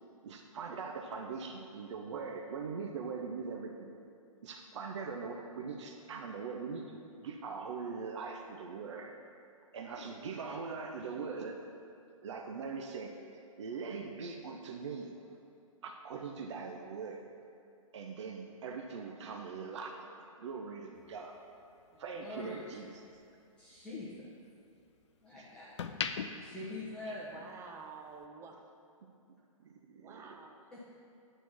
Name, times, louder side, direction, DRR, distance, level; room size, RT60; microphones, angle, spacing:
voice 1, 0.2-3.9 4.4-9.1 9.7-11.6 12.2-13.1 13.6-15.1 15.8-17.2 17.9-21.3 22.0-22.9 25.3-25.4 27.1-27.2 29.6-30.2, right 5 dB, 55° right, 2 dB, 0.7 m, -41 dB
sound 1, 20.9-23.3 23.7-25.1 25.5-27.7 28.0-28.2, left 6 dB, 55° left, 0.5 m, -42 dB
voice 2, 21.9-22.9 23.6-24.4 25.2-25.8 26.4-27.3 30.7-31.0, left 2 dB, 5° left, -11 dB, 1.2 m, -45 dB
voice 3, 27.2-28.7 29.8-30.7, right 5 dB, 15° right, 3 dB, 0.6 m, -50 dB
9.0 x 4.5 x 6.0 m, 2.5 s
figure-of-eight pair, 120°, 18 cm